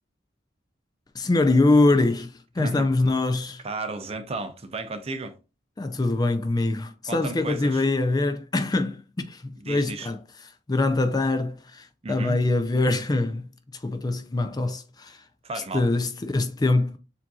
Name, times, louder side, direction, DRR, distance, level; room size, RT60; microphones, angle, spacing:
voice 1, 1.1-3.6 5.8-10.2 10.7-13.5 13.8-15.2 15.7-17.0, left 2 dB, 20° left, 0.4 m, -23 dB
voice 2, 2.6-2.9 3.6-5.3 7.1-7.9 9.6-10.1 12.0-12.4 15.4-15.9, right 2 dB, 35° right, 0.6 m, -33 dB
7.3 x 2.7 x 2.3 m
head